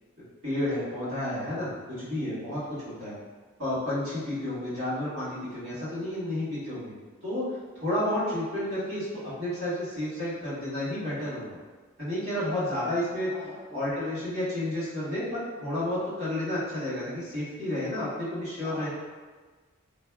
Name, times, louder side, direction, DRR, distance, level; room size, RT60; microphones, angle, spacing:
voice 1, 0.4-3.1 3.6-6.9 7.2-7.4 7.8-9.1 9.4-11.6 12.0-13.3 13.7-18.9, left 1 dB, 60° right, -10 dB, 1.5 m, -31 dB
voice 2, 13.2-13.8 18.6-18.9, left 1 dB, 85° right, -10 dB, 0.9 m, -44 dB
2.7 x 2.0 x 3.4 m, 1.4 s
head